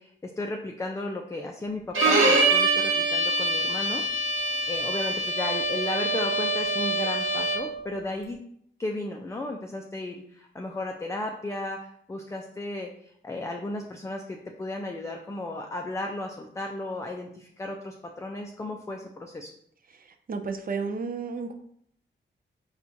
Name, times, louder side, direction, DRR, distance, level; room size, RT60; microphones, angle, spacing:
voice 1, 0.0-4.1 4.7-8.4 8.8-19.5, left 2 dB, 15° left, 2 dB, 0.3 m, -34 dB
Bowed string instrument, 1.9-7.8, right 2 dB, 85° right, 0.7 m, -24 dB
voice 2, 19.9-21.5, right 4 dB, 45° right, 6 dB, 0.4 m, -33 dB
4.4 x 2.3 x 2.6 m, 0.68 s
cardioid pair, 70°, 20 cm